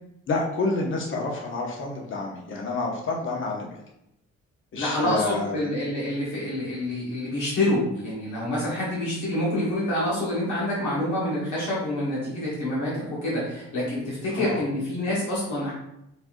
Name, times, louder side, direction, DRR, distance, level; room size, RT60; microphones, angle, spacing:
voice 1, 0.3-3.7 4.7-5.7 14.3-14.6, left 3 dB, 40° left, 0 dB, 0.8 m, -28 dB
voice 2, 4.8-15.7, left 1 dB, 75° left, -6 dB, 1.4 m, -27 dB
5.2 x 2.4 x 2.5 m, 0.84 s
cardioid pair, 90°, 30 cm